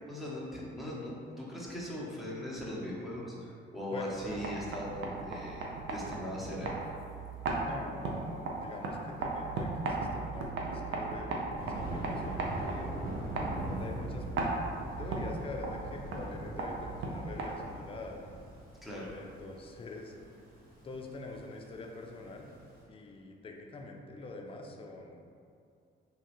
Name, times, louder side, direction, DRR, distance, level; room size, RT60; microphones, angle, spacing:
voice 1, 0.1-7.0 18.8-19.1, equal, ahead, -7 dB, 0.7 m, -40 dB
voice 2, 3.9-4.5 7.5-12.9 13.8-14.3 15.0-18.3 19.1-20.1 20.8-22.5 22.9-25.2, left 2 dB, 30° left, 1 dB, 0.4 m, -45 dB
sound 1, 4.1-17.9, right 3 dB, 75° right, 0.5 m, -37 dB
Thunder, 11.6-22.7, right 1 dB, 50° right, 1.0 m, -42 dB
3.0 x 2.3 x 2.9 m, 2.4 s
cardioid pair, 90°, 20 cm